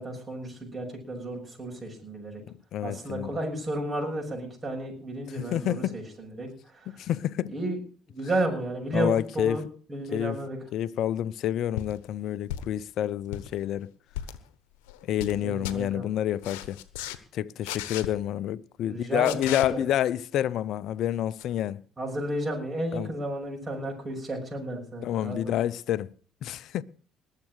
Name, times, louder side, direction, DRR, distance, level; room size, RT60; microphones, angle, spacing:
voice 1, 0.0-2.4 2.8-6.5 7.5-7.8 8.1-9.6 9.9-10.6 15.4-16.1 18.9-19.8 22.0-25.4, right 1 dB, 30° right, 6.4 m, -32 dB
voice 2, 2.7-3.4 5.3-6.0 6.9-7.5 8.9-9.6 10.1-10.4 10.7-13.9 15.1-16.8 17.3-21.8 22.9-23.1 25.0-26.1 26.4-26.8, left 11 dB, 65° left, 0.6 m, -28 dB
sound 1, 11.8-12.0 12.5-12.8 13.2-13.5 14.1-14.4 14.9-15.4 15.6-15.8 16.4-17.2 17.6-18.1 19.2-19.7 21.4-21.5, left 12 dB, 85° left, 1.0 m, -35 dB
20.5 x 7.5 x 6.3 m
hypercardioid pair, 65°, 0 cm